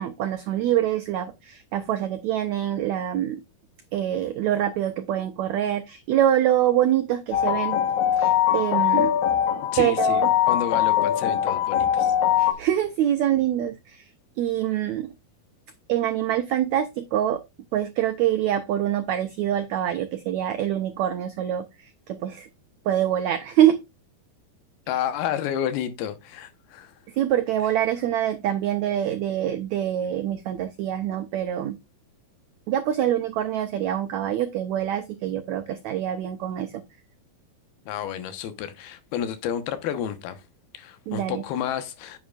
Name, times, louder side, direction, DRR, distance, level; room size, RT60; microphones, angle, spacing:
voice 1, 0.0-3.4 3.9-7.8 8.2-9.1 9.8-10.3 12.4-14.0 14.4-15.1 15.9-17.4 17.7-21.7 22.1-22.5 22.9-23.8 27.2-31.8 32.7-36.8 41.1-41.4, right 11 dB, 85° right, 1.6 m, -25 dB
sound 1, 7.3-12.5, left 10 dB, 60° left, 2.3 m, -22 dB
voice 2, 9.7-12.1 24.9-26.9 37.9-40.4 40.7-42.2, left 9 dB, 85° left, 3.1 m, -30 dB
9.5 x 8.4 x 2.4 m
omnidirectional pair, 4.3 m